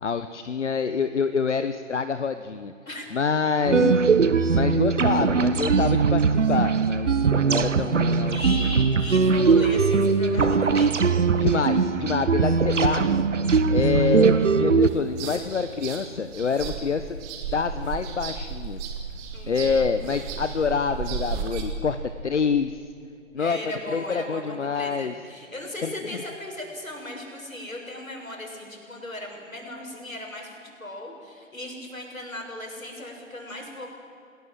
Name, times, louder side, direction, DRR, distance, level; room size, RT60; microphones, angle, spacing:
voice 1, 0.0-2.7 3.1-4.1 4.5-8.4 11.4-13.2 13.7-17.2 17.5-18.9 19.5-22.0 22.2-22.8 23.3-25.1 25.8-25.9, left 5 dB, 60° left, 10 dB, 1.1 m, -26 dB
sound 1, 3.6-14.9, right 5 dB, 60° right, 1.2 m, -20 dB
voice 2, 8.3-11.0 19.3-19.7 23.4-33.9, left 1 dB, 80° left, 0 dB, 7.2 m, -37 dB
sound 2, 14.8-21.6, right 6 dB, 15° right, 2.0 m, -34 dB
28.5 x 17.5 x 7.8 m, 2.6 s
figure-of-eight pair, 135°, 40 cm